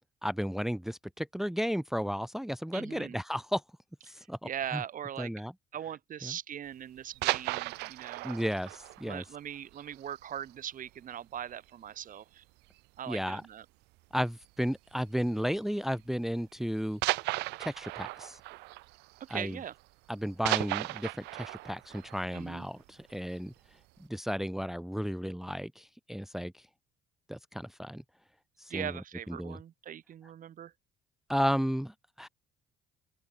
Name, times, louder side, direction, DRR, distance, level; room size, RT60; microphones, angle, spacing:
voice 1, 0.2-3.6 4.1-4.8 5.2-5.5 6.2-6.3 8.2-9.2 13.1-13.4 14.1-17.0 17.6-18.4 19.3-19.6 20.1-23.5 24.1-26.5 27.3-28.0 28.7-29.0 29.3-29.6 31.3-32.3, equal, ahead, 0.9 m, -33 dB
voice 2, 2.7-3.2 4.4-5.3 5.7-8.3 9.0-12.4 13.0-13.7 19.2-19.7 22.3-22.7 28.7-30.7, right 10 dB, 50° right, 4.0 m, -40 dB
sound 1, 7.0-10.5 10.8-10.9 11.4-11.6 11.9-12.0 12.8-13.2 14.4-14.7 15.6-15.7 17.0-19.8 20.1-23.2 23.7-23.8, right 22 dB, 85° right, 0.4 m, -36 dB
open air
cardioid pair, 110°, 17 cm